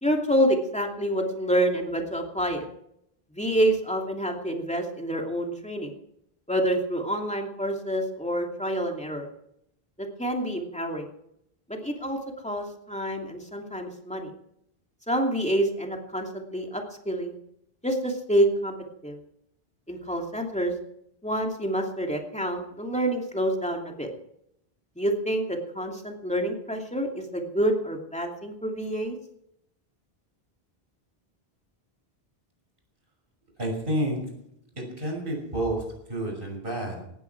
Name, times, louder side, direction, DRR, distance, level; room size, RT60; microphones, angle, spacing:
voice 1, 0.0-2.6 3.3-5.9 6.5-9.3 10.2-11.1 11.7-12.2 12.4-14.3 15.1-17.3 17.8-18.7 19.0-19.2 19.9-20.7 21.2-24.1 25.0-29.2, right 1 dB, 5° left, 1 dB, 2.8 m, -27 dB
voice 2, 33.6-34.2 34.8-37.0, right 1 dB, 60° right, 1 dB, 6.4 m, -30 dB
18.5 x 14.5 x 4.7 m, 0.76 s
omnidirectional pair, 1.1 m